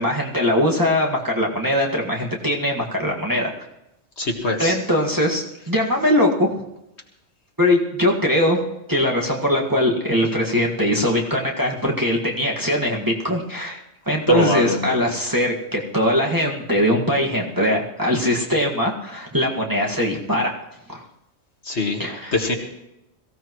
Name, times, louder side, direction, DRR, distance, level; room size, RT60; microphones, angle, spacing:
voice 1, 0.0-3.7 4.6-6.5 7.6-8.6 8.9-20.6 20.9-21.0 22.0-22.3, left 1 dB, 15° right, -3 dB, 1.9 m, -21 dB
voice 2, 4.2-4.8 14.3-15.0 21.7-22.0 22.3-22.5, left 2 dB, 60° left, 2 dB, 2.1 m, -22 dB
22.5 x 16.0 x 3.1 m, 0.89 s
omnidirectional pair, 1.3 m